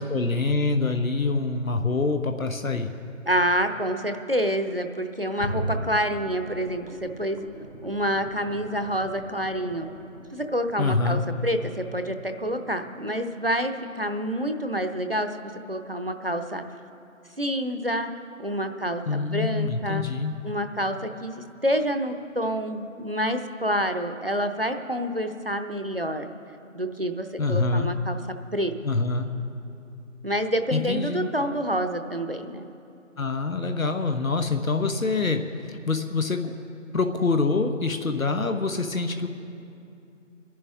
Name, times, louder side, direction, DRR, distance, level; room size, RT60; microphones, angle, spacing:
voice 1, 0.0-2.9 10.8-11.2 19.1-20.3 27.4-27.9 28.8-29.3 30.7-31.3 33.2-35.4 35.7-36.5 36.9-39.3, left 3 dB, 85° left, 6 dB, 1.1 m, -25 dB
voice 2, 3.3-7.5 7.8-9.9 10.3-16.6 17.4-18.1 18.4-20.0 20.4-26.3 26.7-28.2 28.5-28.7 30.2-32.7, equal, 45° right, 7 dB, 0.8 m, -28 dB
sound 1, 5.4-11.2 11.6-11.7, right 1 dB, 65° left, 2.9 m, -37 dB
27.5 x 11.0 x 3.6 m, 2.7 s
figure-of-eight pair, 180°, 40 cm